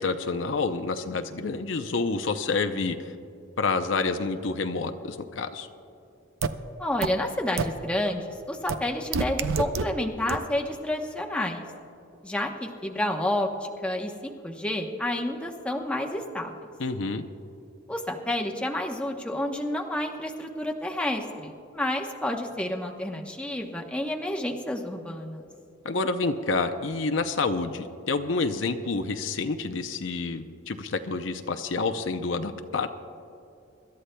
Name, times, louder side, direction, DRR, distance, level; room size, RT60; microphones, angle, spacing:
voice 1, 0.0-3.1 3.6-5.7 16.8-17.2 25.8-32.9, left 3 dB, 65° left, 7 dB, 0.6 m, -28 dB
sound 1, 6.4-6.5 7.0-7.1 7.6-7.7 8.7-8.8 9.1-9.8 10.3-10.4, right 5 dB, 85° right, 0.6 m, -25 dB
voice 2, 6.8-11.6 12.2-16.5 17.9-25.4, left 1 dB, 5° left, 1 dB, 0.9 m, -30 dB
25.5 x 13.0 x 2.2 m, 2.7 s
head